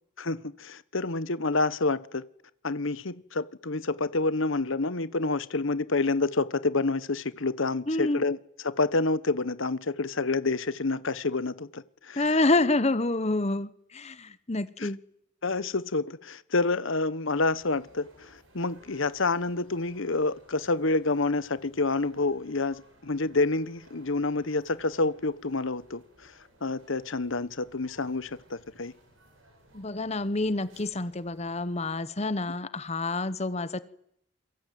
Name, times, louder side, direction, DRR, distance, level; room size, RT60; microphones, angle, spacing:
voice 1, 0.2-2.2 2.6-8.4 8.6-12.3 14.8-14.9 15.4-26.3 26.6-28.9, left 3 dB, 60° left, 16 dB, 1.1 m, -28 dB
voice 2, 7.9-8.2 12.2-15.0 29.7-33.8, left 2 dB, 30° left, 15 dB, 1.0 m, -28 dB
sound 1, 17.5-32.0, right 1 dB, 60° right, 7.2 m, -59 dB
27.5 x 23.5 x 9.3 m, 0.73 s
head